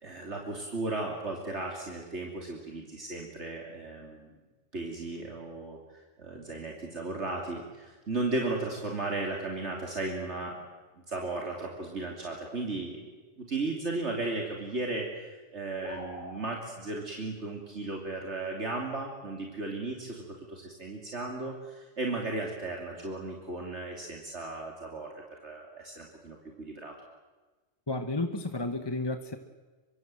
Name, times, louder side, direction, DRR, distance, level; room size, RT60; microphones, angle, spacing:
voice 1, 0.0-4.3 4.7-5.8 6.2-10.5 11.1-13.1 13.4-25.1 25.4-26.9, right 2 dB, 65° right, 0 dB, 3.2 m, -35 dB
sound 1, 15.8-16.4, left 1 dB, 40° left, 5.1 m, -42 dB
voice 2, 27.9-29.4, left 2 dB, 20° left, 8 dB, 1.2 m, -32 dB
24.5 x 23.5 x 7.7 m, 1.3 s
omnidirectional pair, 1.3 m